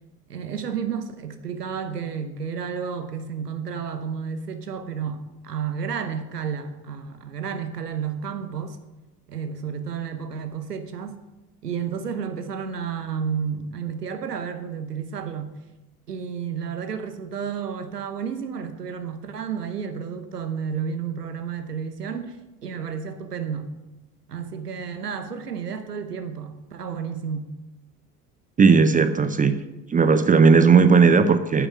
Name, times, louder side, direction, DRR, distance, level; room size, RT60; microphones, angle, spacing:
voice 1, 0.3-8.8 9.3-11.2 11.6-15.5 16.1-23.7 24.3-27.5, right 7 dB, 85° right, 9 dB, 1.0 m, -31 dB
voice 2, 28.6-29.5 29.9-31.7, right 5 dB, 20° right, 11 dB, 0.6 m, -16 dB
8.8 x 8.5 x 6.1 m, 1.0 s
figure-of-eight pair, 65°, 46 cm